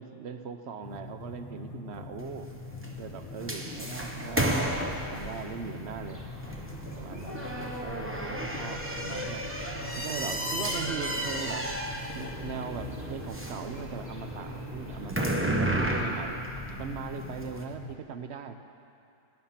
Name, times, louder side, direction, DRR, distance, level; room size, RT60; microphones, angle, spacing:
voice 1, 0.0-2.5 3.0-4.4 5.1-6.2 6.9-9.4 10.0-11.7 12.1-16.4 16.8-18.6, right 6 dB, 55° right, 8 dB, 0.8 m, -39 dB
sound 1, 0.8-18.0, left 3 dB, 35° left, 0.5 m, -43 dB
sound 2, 2.2-17.6, right 1 dB, 10° right, 0.8 m, -34 dB
sound 3, 5.9-15.4, equal, 25° right, 1.7 m, -46 dB
18.0 x 10.5 x 5.8 m, 2.5 s
omnidirectional pair, 1.7 m